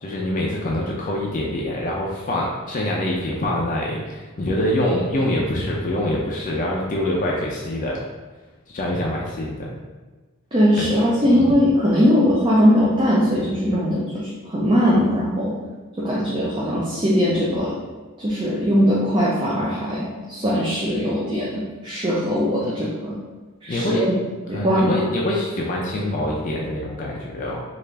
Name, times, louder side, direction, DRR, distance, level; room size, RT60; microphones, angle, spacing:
voice 1, 0.0-8.0 8.7-9.7 10.8-10.9 11.3-11.4 22.6-22.7 23.7-24.0 24.5-27.6, left 1 dB, 40° left, -3 dB, 0.4 m, -25 dB
voice 2, 10.5-15.6 16.0-17.7 18.2-23.1 23.6-24.1 24.5-25.0, equal, 25° right, -6 dB, 0.5 m, -20 dB
3.2 x 2.4 x 3.3 m, 1.3 s
head